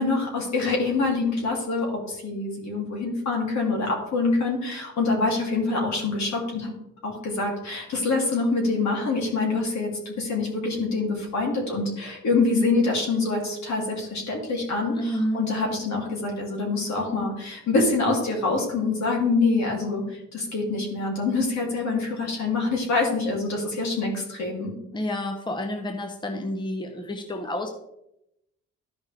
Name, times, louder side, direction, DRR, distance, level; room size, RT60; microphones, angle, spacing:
voice 1, 0.0-6.7 7.0-20.0 20.3-24.7, left 3 dB, 65° left, -1 dB, 3.1 m, -25 dB
voice 2, 14.9-15.5 24.9-27.7, left 1 dB, 15° left, 4 dB, 0.9 m, -29 dB
13.0 x 5.3 x 3.5 m, 0.84 s
cardioid pair, 90°, 30 cm